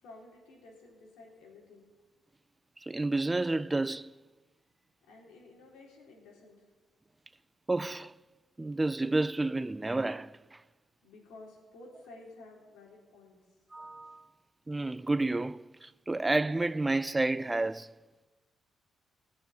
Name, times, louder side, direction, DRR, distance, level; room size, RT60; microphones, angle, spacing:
voice 1, 0.0-1.9 5.0-6.6 11.0-13.4, left 2 dB, 85° left, 4.0 m, -53 dB
voice 2, 2.8-4.1 7.7-8.1 8.6-10.6 13.7-14.2 14.7-17.9, right 2 dB, 15° right, 0.4 m, -30 dB
16.0 x 7.0 x 9.2 m
cardioid pair, 90°, 0 cm